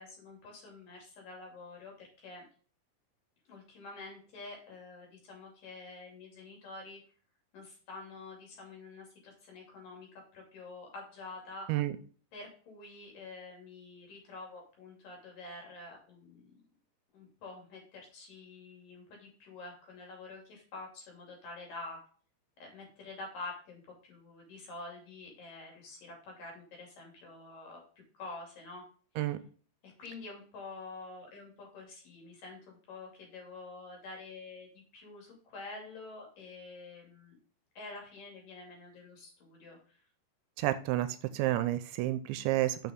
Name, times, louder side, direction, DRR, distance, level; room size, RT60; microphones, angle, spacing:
voice 1, 0.0-2.5 3.5-7.0 7.5-11.7 12.3-16.6 17.1-22.0 22.6-27.8 28.1-28.8 29.8-37.4 37.8-40.0, left 3 dB, 50° left, 0 dB, 3.8 m, -47 dB
voice 2, 40.6-42.9, right 15 dB, 85° right, 12 dB, 2.8 m, -30 dB
6.9 x 6.1 x 3.6 m, 0.41 s
omnidirectional pair, 5.3 m